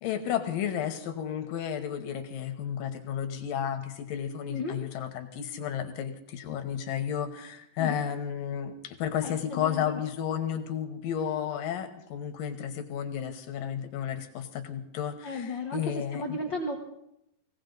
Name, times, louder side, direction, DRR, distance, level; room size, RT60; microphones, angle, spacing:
voice 1, 0.0-16.4, left 9 dB, 90° left, 7 dB, 2.9 m, -32 dB
voice 2, 4.5-4.8 7.8-8.0 9.2-10.0 15.2-16.8, left 2 dB, 70° left, 0 dB, 1.1 m, -34 dB
18.0 x 17.0 x 3.9 m, 0.79 s
omnidirectional pair, 3.9 m